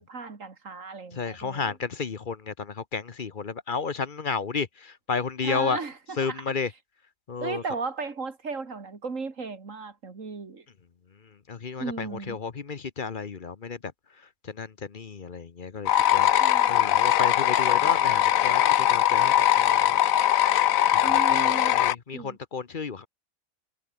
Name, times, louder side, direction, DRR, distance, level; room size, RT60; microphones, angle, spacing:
voice 1, 0.0-1.8 5.4-6.4 7.4-10.6 11.8-12.4 16.4-16.8 21.0-21.8 22.1-22.4, right 4 dB, 65° right, 2.8 m, -36 dB
voice 2, 1.1-5.8 6.2-6.7 7.3-7.6 11.5-13.8 14.5-16.3 16.7-20.2 20.9-23.1, left 5 dB, 40° left, 1.0 m, -32 dB
sound 1, 15.9-21.9, left 11 dB, 75° left, 1.2 m, -21 dB
omnidirectional pair, 1.5 m